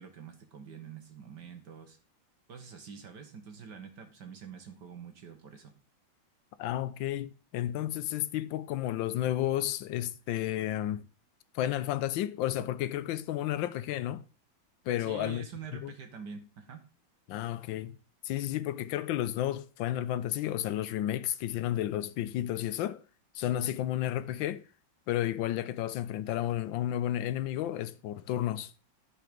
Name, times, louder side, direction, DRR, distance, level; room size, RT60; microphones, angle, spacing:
voice 1, 0.0-2.0 2.5-5.7 15.0-16.8, right 6 dB, 65° right, 1.7 m, -46 dB
voice 2, 6.6-11.1 11.5-14.2 14.9-15.5 15.8-15.9 17.3-17.9 18.2-23.0 23.3-24.6 25.1-28.7, left 12 dB, 80° left, 1.3 m, -32 dB
11.0 x 4.8 x 5.1 m
omnidirectional pair, 2.1 m